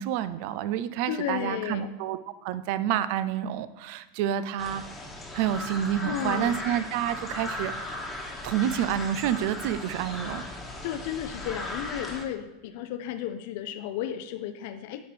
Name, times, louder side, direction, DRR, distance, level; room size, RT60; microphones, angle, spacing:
voice 1, 0.0-4.8 5.3-8.0 8.4-10.4, right 10 dB, 60° right, 15 dB, 0.3 m, -29 dB
voice 2, 1.1-1.9 6.0-6.6 10.8-15.0, left 10 dB, 65° left, 10 dB, 0.4 m, -33 dB
sound 1, 4.6-12.2, left 1 dB, 15° left, 1.2 m, -37 dB
8.6 x 5.1 x 3.4 m, 0.97 s
hypercardioid pair, 100°, 0 cm